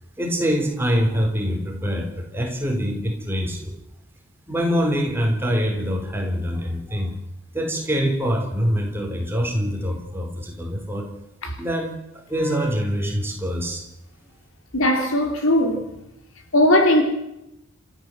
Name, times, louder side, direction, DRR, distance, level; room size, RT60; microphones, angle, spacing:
voice 1, 0.2-3.8 4.5-7.1 7.5-11.1 11.6-13.8, equal, 10° right, 3.8 m, -24 dB
voice 2, 12.3-12.7 14.7-15.8 16.5-17.0, left 1 dB, 75° left, 3.7 m, -19 dB
28.0 x 13.5 x 7.8 m
head